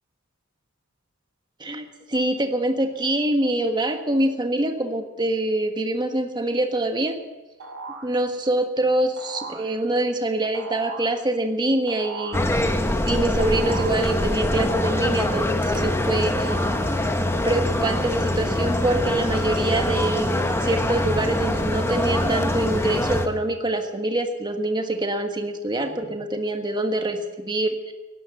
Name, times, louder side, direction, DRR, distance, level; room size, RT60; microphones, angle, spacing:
voice 1, 1.6-7.2 8.0-12.4 13.0-16.6 17.4-27.9, right 1 dB, 20° right, 5 dB, 1.5 m, -25 dB
sound 1, 7.6-8.1 9.2-9.7 10.5-11.2 11.9-12.5 13.4-14.1 14.7-15.6 16.4-17.2, right 4 dB, 80° right, 3.0 m, -37 dB
sound 2, 12.3-23.3, left 1 dB, 10° left, 1.0 m, -24 dB
17.0 x 11.0 x 7.9 m, 1.1 s
head